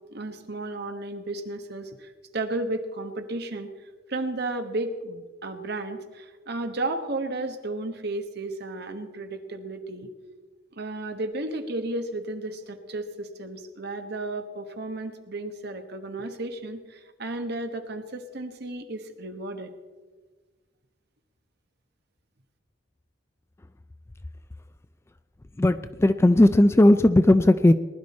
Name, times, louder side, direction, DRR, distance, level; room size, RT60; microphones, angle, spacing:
voice 1, 0.1-3.7 4.1-10.1 10.7-19.7, right 2 dB, 55° right, 1.3 m, -33 dB
voice 2, 25.6-27.7, left 1 dB, 15° left, 0.3 m, -17 dB
20.0 x 11.5 x 4.2 m
head